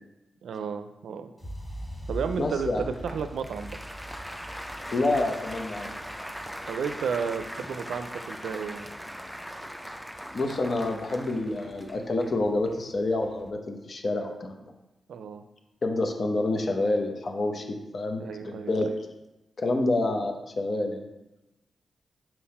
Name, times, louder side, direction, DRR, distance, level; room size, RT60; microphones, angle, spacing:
voice 1, 0.4-1.3 2.1-2.7 3.0-3.8 6.7-8.9 15.1-15.4 18.2-19.0, right 6 dB, 85° right, 9 dB, 0.4 m, -32 dB
sound 1, 1.4-9.3, equal, 25° left, 1.9 m, -42 dB
voice 2, 2.4-2.9 4.9-5.9 10.3-14.6 15.8-18.9 19.6-21.1, left 2 dB, 55° left, 4 dB, 0.9 m, -28 dB
Applause, 2.9-13.5, equal, ahead, 0.5 m, -41 dB
5.7 x 4.5 x 4.2 m, 0.99 s
cardioid pair, 55°, 0 cm